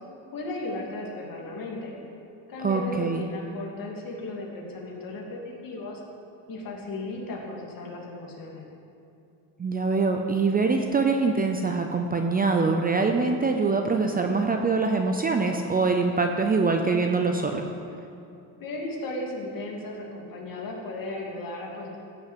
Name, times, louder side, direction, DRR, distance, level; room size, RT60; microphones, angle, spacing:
voice 1, 0.3-1.9 2.5-6.0 6.5-8.6 18.6-22.0, left 2 dB, 50° left, -1 dB, 2.9 m, -35 dB
voice 2, 2.6-3.3 9.6-17.6, right 4 dB, 20° right, 4 dB, 0.6 m, -24 dB
15.5 x 6.5 x 8.3 m, 2.7 s
cardioid pair, 145°, 45 cm